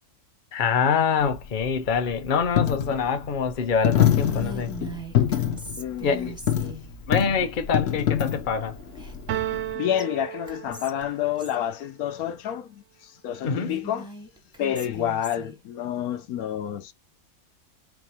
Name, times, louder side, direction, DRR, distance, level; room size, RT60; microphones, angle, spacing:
voice 1, 0.5-4.7 6.0-6.3 7.1-8.8 13.4-13.7, left 6 dB, 40° left, 0.8 m, -25 dB
Coin (dropping), 1.2-9.7, left 10 dB, 60° left, 1.2 m, -26 dB
Whispering, 4.1-6.9 8.9-9.7 10.0-10.1 10.5-11.6 13.4-15.6, right 3 dB, 5° right, 0.8 m, -40 dB
voice 2, 5.8-6.3 9.7-14.1 14.6-16.9, left 10 dB, 80° left, 1.1 m, -29 dB
sound 1, 9.3-11.2, right 13 dB, 65° right, 0.8 m, -32 dB
5.1 x 3.0 x 2.9 m
omnidirectional pair, 1.6 m